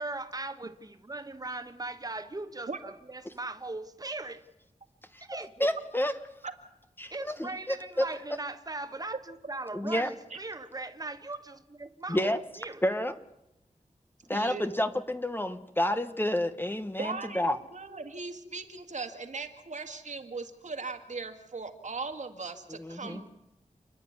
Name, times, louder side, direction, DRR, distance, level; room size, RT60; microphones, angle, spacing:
voice 1, 0.0-4.4 5.2-5.7 7.1-12.8 23.1-23.2, right 2 dB, 25° right, 1.3 m, -39 dB
voice 2, 5.6-6.1 7.0-8.1 9.7-10.1 12.1-12.4 12.8-13.1 14.3-17.6 22.7-23.2, left 1 dB, 15° left, 1.1 m, -29 dB
voice 3, 14.3-14.6 17.0-23.3, right 4 dB, 60° right, 2.0 m, -39 dB
29.0 x 10.5 x 9.5 m
wide cardioid pair, 100°, 14 cm